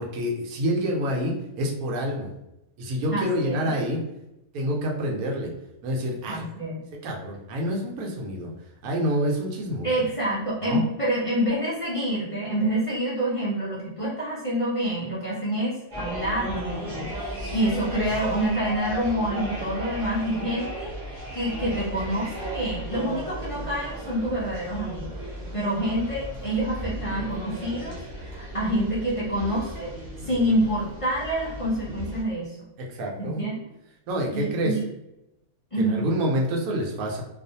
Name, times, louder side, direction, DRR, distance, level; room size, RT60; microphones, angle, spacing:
voice 1, 0.0-2.3 2.8-4.0 4.5-5.5 5.8-6.4 6.9-8.5 8.8-10.0 10.6-10.8 18.1-18.2 30.2-30.6 32.8-33.4 34.1-34.8 35.8-37.2, equal, 85° right, 0 dB, 1.1 m, -27 dB
voice 2, 3.1-3.7 6.3-6.8 9.8-20.9 21.3-25.1 25.5-29.9 30.2-32.6 33.2-33.6 34.3-34.8 35.7-36.1, right 1 dB, 50° left, -8 dB, 0.3 m, -27 dB
sound 1, 15.9-32.2, right 1 dB, 40° right, 0.8 m, -35 dB
2.4 x 2.4 x 2.6 m, 0.90 s
omnidirectional pair, 1.5 m